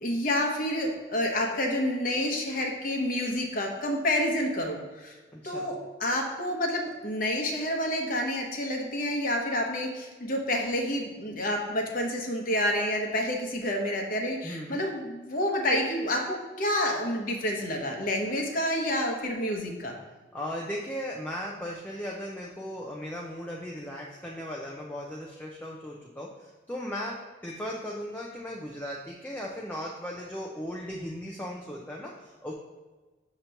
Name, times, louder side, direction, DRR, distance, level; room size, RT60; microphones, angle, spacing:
voice 1, 0.0-5.1 5.4-20.0, left 1 dB, 45° left, 1 dB, 0.9 m, -29 dB
voice 2, 5.3-5.7 14.4-14.8 20.3-27.2 27.4-32.5, equal, 10° left, -2 dB, 0.5 m, -37 dB
6.5 x 3.0 x 5.6 m, 1.3 s
head